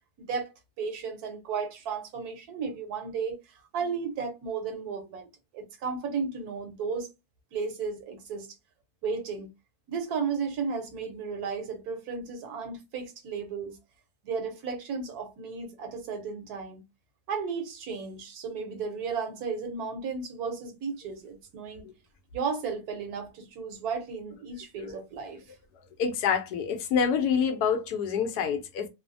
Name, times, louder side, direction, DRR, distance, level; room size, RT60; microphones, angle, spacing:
voice 1, 0.2-0.5 0.8-3.4 3.7-5.3 5.5-7.1 7.5-8.5 9.0-9.5 9.9-13.8 14.2-16.8 17.3-21.9 22.3-25.4, right 5 dB, 75° right, 1.3 m, -34 dB
voice 2, 26.0-28.9, left 7 dB, 85° left, 1.2 m, -27 dB
3.1 x 2.0 x 2.5 m
omnidirectional pair, 1.6 m